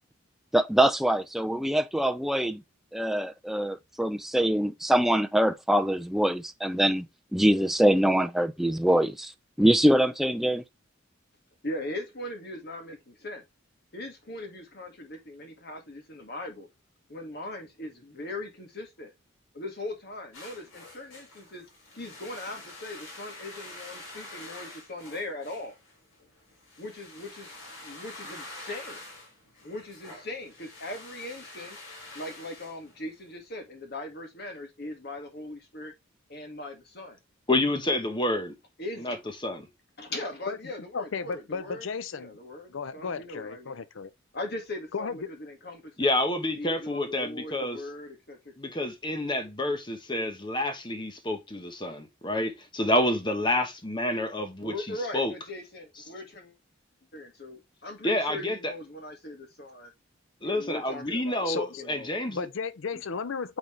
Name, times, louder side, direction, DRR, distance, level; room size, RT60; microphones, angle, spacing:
voice 1, 0.5-2.6 2.9-7.1 7.3-9.3 9.6-10.6, right 1 dB, ahead, 0.4 m, -24 dB
voice 2, 11.6-13.4 13.9-16.7 17.1-19.1 19.5-21.7 21.9-25.8 26.8-29.0 29.6-31.8 32.1-35.9 36.3-37.2 38.8-39.2 40.0-41.9 42.1-43.8 44.3-46.1 46.6-48.7 54.6-56.5 57.1-59.9 60.4-61.5 61.8-62.1, left 1 dB, 50° left, 1.9 m, -40 dB
sound 1, 20.3-33.4, left 2 dB, 90° left, 3.3 m, -47 dB
voice 3, 37.5-38.5 39.0-39.2 39.4-39.7 46.0-47.8 48.6-55.3 58.0-58.7 60.4-62.5, left 1 dB, 20° left, 1.1 m, -28 dB
voice 4, 40.9-42.4 42.7-44.1 44.9-45.3 61.5-61.8 62.3-63.6, left 5 dB, 70° left, 0.5 m, -34 dB
8.7 x 4.0 x 3.2 m
head